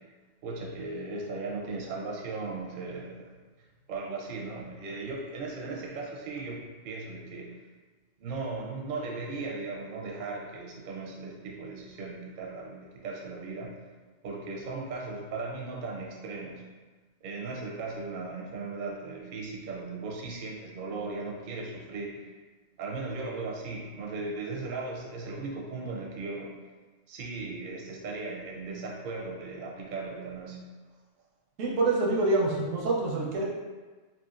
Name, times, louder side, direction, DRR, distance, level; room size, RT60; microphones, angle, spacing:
voice 1, 0.4-3.3 3.9-7.5 8.2-13.7 14.2-16.6 17.2-22.2 22.8-26.5 27.1-30.7, right 3 dB, 60° right, -2 dB, 0.6 m, -37 dB
voice 2, 31.6-33.4, right 2 dB, 85° right, -3 dB, 1.0 m, -26 dB
2.9 x 2.3 x 2.4 m, 1.3 s
omnidirectional pair, 1.3 m